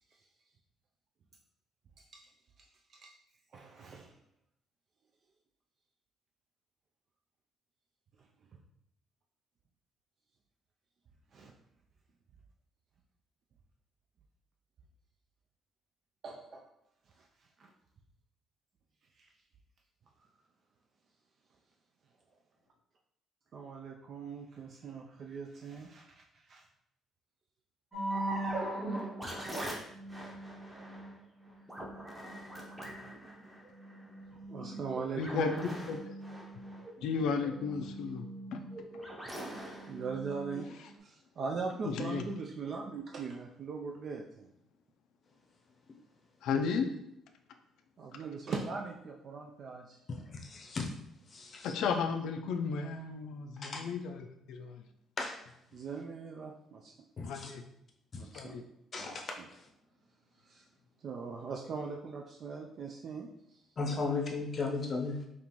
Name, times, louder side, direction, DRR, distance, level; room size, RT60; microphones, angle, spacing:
voice 1, 2.0-2.3 2.9-3.1 3.5-4.2 8.2-8.3 8.5-8.6 11.3-11.5 16.2-16.7 17.2-17.3 17.6-17.7 19.2-19.3 23.5-26.6 34.5-35.7 37.8-37.9 39.9-40.7 41.0-44.5 48.0-50.0 51.4-51.6 55.7-56.9 58.2-58.6 59.0-59.1 60.4-60.6 61.0-63.6, right 5 dB, 45° right, 1 dB, 0.3 m, -41 dB
sound 1, 27.9-41.0, right 1 dB, 10° right, 0.8 m, -41 dB
voice 2, 35.2-35.5 35.9-36.0 37.0-38.2 38.5-38.6 42.0-42.2 46.4-46.9 51.6-54.8 57.2-57.6 58.3-58.6, left 5 dB, 75° left, 6 dB, 0.4 m, -33 dB
voice 3, 50.1-50.9 51.3-51.7 53.6-53.9 55.2-55.4 57.2-57.5 58.1-58.2 58.9-59.7 63.8-65.3, left 3 dB, 35° left, 1 dB, 0.7 m, -36 dB
5.3 x 2.4 x 3.0 m, 0.78 s
cardioid pair, 145°, 0 cm